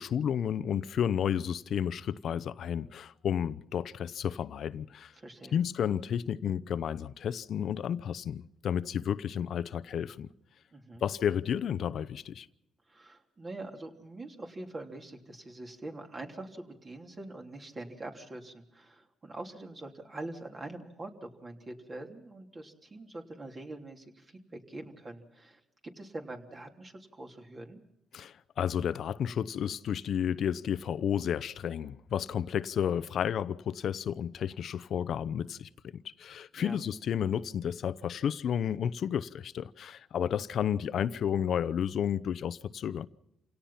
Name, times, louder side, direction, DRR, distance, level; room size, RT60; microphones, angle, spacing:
voice 1, 0.0-5.1 5.5-10.3 11.0-12.5 28.1-43.1, left 9 dB, 65° left, 0.7 m, -32 dB
voice 2, 5.2-5.6 10.7-11.0 12.9-27.8 36.5-36.8, right 2 dB, 30° right, 3.2 m, -44 dB
28.0 x 17.5 x 5.8 m
cardioid pair, 90°, 0 cm